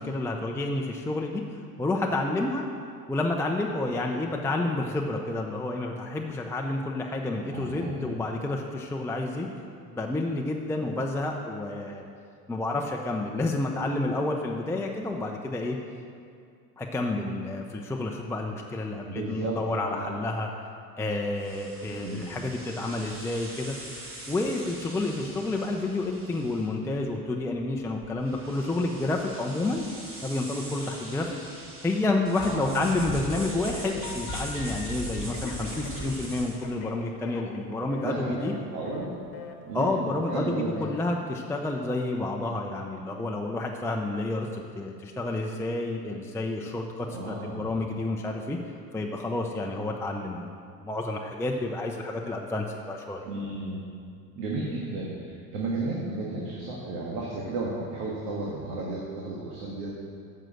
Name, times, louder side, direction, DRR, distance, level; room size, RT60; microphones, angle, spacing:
voice 1, 0.0-2.6 3.1-9.5 9.9-12.0 12.5-15.8 16.8-20.5 21.0-23.8 24.3-29.8 30.2-31.4 31.8-38.5 39.7-48.6 48.9-50.5 50.8-53.3, left 2 dB, 5° left, 0 dB, 0.5 m, -30 dB
voice 2, 7.5-8.1 19.0-20.2 21.9-22.3 32.5-32.9 38.0-38.4 38.7-39.1 39.6-40.0 40.3-40.9 47.1-47.7 53.3-53.9 54.3-60.0, right 2 dB, 75° right, -3 dB, 1.7 m, -33 dB
sound 1, 21.4-36.7, equal, 25° right, 2.7 m, -41 dB
Telephone, 32.4-33.0 33.3-34.9 35.3-38.1 38.4-38.6 38.8-39.1 39.3-39.5 39.8-40.0 40.3-40.5 40.8-41.0, left 8 dB, 45° left, 1.2 m, -42 dB
7.5 x 6.6 x 7.7 m, 2.3 s
hypercardioid pair, 90°, 48 cm